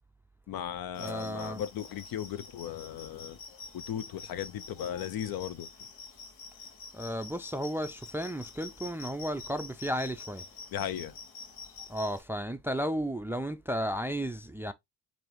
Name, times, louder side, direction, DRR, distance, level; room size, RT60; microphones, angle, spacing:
voice 1, 0.5-3.4 3.9-5.7 10.7-11.1, left 10 dB, 55° left, 0.6 m, -36 dB
sound 1, 0.9-12.2, left 5 dB, 75° left, 1.3 m, -47 dB
voice 2, 1.0-1.6 6.9-10.4 11.9-14.7, equal, 5° right, 0.4 m, -33 dB
4.6 x 2.7 x 2.9 m
hypercardioid pair, 50°, 42 cm